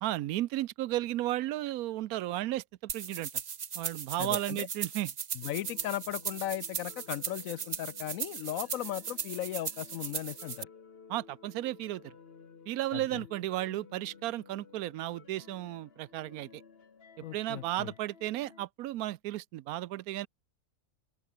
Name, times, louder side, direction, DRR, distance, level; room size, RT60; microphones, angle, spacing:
voice 1, 0.0-3.3 3.8-5.1 11.1-12.1 12.7-16.6 17.3-20.3, right 15 dB, 85° right, 1.1 m, -34 dB
sound 1, 2.9-10.6, right 7 dB, 45° right, 0.6 m, -38 dB
voice 2, 4.2-4.7 5.3-10.7 12.9-13.2 17.2-17.9, left 13 dB, 75° left, 1.0 m, -37 dB
sound 2, 5.4-18.7, left 5 dB, 45° left, 1.5 m, -55 dB
open air
omnidirectional pair, 1.5 m